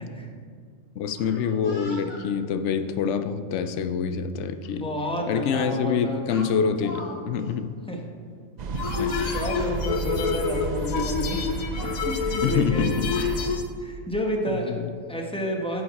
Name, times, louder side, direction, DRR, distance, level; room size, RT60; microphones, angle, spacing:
voice 1, 1.0-4.9 5.3-7.7 9.0-9.3 12.4-13.1 14.5-14.9, left 6 dB, 70° left, 10 dB, 0.8 m, -26 dB
Speech, 1.1-2.2 3.1-3.4 4.6-4.7 5.1-5.3 6.3-7.1 7.4-7.5 8.8-9.7 10.6-10.7 11.1-11.5 11.8-12.0 12.8-13.4, left 2 dB, 30° left, 2.2 m, -41 dB
voice 2, 4.8-6.2 7.9-8.0 9.3-11.5 12.0-13.1 13.8-14.7 15.1-15.8, equal, 5° left, 0 dB, 0.9 m, -30 dB
sound 1, 8.6-13.6, right 2 dB, 55° right, 0.5 m, -32 dB
sound 2, 8.8-13.7, left 5 dB, 85° left, 1.1 m, -29 dB
10.0 x 7.1 x 4.1 m, 2.1 s
omnidirectional pair, 1.4 m